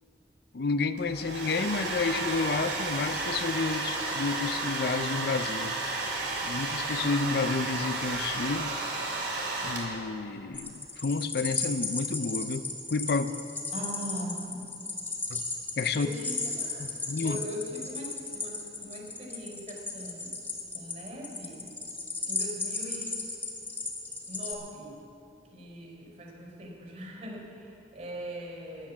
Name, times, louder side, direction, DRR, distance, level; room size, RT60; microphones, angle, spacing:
voice 1, 0.5-5.7 6.4-8.7 9.6-13.3 15.3-15.4 15.8-16.1 16.8-17.4, left 4 dB, 60° left, 11 dB, 0.5 m, -30 dB
Domestic sounds home sounds, 1.0-10.2, right 2 dB, 80° right, 2.9 m, -32 dB
sound 1, 10.5-24.5, left 3 dB, 10° left, 1.6 m, -35 dB
voice 2, 13.7-14.8 15.9-20.4 20.7-21.7 22.2-23.2 24.3-25.0 25.5-28.9, equal, 45° right, 0 dB, 4.6 m, -41 dB
14.5 x 11.0 x 7.2 m, 2.8 s
head